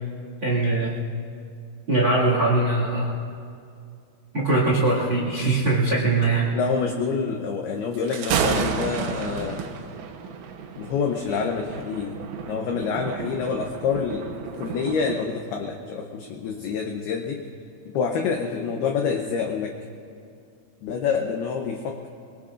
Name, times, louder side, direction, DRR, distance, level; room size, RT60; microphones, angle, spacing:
voice 1, 0.4-1.0 1.9-3.1 4.3-6.5, right 2 dB, 45° right, -2 dB, 1.5 m, -21 dB
voice 2, 6.5-9.6 10.8-12.2 12.5-17.4 17.9-19.8 20.8-22.1, left 5 dB, 85° left, 3 dB, 2.2 m, -27 dB
Thunder, 7.9-15.2, right 6 dB, 90° right, 3.6 m, -31 dB
23.5 x 22.5 x 2.5 m, 2.4 s
omnidirectional pair, 5.7 m